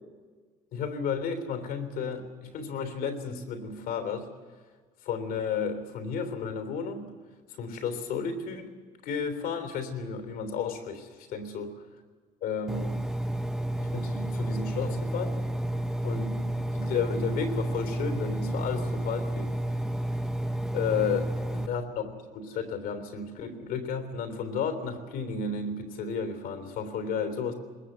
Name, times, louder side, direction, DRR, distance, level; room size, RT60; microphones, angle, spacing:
voice 1, 0.7-4.3 5.0-7.1 7.6-8.7 9.0-11.8 12.4-13.0 13.8-15.4 16.0-16.4 16.7-19.6 20.7-27.5, left 6 dB, 75° left, 7 dB, 3.3 m, -33 dB
Engine, 12.7-21.7, right 1 dB, 5° right, 1.0 m, -31 dB
21.0 x 20.5 x 8.0 m, 1.5 s
cardioid pair, 100°, 15 cm